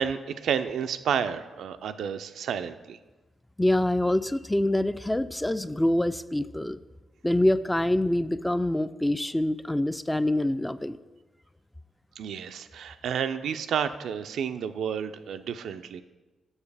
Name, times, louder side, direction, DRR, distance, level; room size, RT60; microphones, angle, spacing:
voice 1, 0.0-3.0 12.2-16.0, right 7 dB, 70° right, 10 dB, 0.3 m, -30 dB
voice 2, 3.6-6.8 7.2-11.0, left 1 dB, 10° left, 13 dB, 0.3 m, -25 dB
7.2 x 6.3 x 3.3 m, 1.2 s
hypercardioid pair, 40°, 0 cm